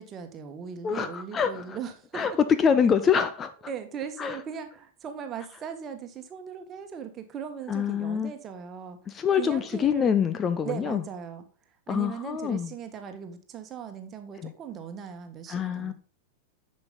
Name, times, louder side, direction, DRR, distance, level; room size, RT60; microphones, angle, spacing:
voice 1, 0.0-2.4 3.7-10.1 10.6-11.4 11.9-15.9, right 7 dB, 30° right, 1.4 m, -39 dB
voice 2, 0.8-1.8 2.1-2.3 2.6-3.5 4.2-4.4 7.7-8.3 9.1-11.0 11.9-12.7 14.4-14.5 15.5-15.9, left 7 dB, 25° left, 0.6 m, -25 dB
10.5 x 5.4 x 3.9 m
figure-of-eight pair, 90°, 0 cm